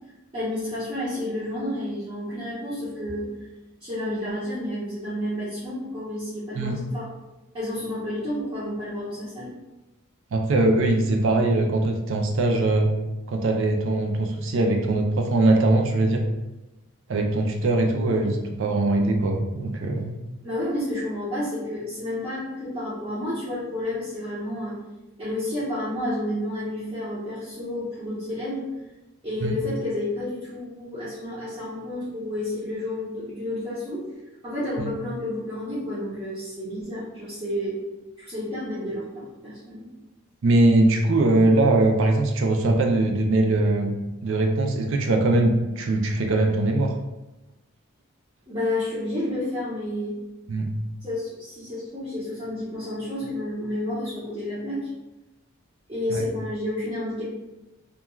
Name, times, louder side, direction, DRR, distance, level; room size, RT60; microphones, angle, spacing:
voice 1, 0.3-3.3 3.8-7.1 7.5-9.5 20.4-24.8 25.2-28.7 29.2-34.0 34.4-37.8 38.2-39.9 48.5-50.2 51.0-54.9 55.9-57.2, left 1 dB, 20° right, -11 dB, 0.6 m, -30 dB
voice 2, 10.3-12.9 13.3-16.2 17.1-20.1 29.4-29.6 34.8-34.9 40.4-43.9 44.2-46.9 50.5-50.7 56.1-56.2, right 2 dB, 60° right, 3 dB, 0.4 m, -21 dB
2.3 x 2.2 x 3.0 m, 1.0 s
head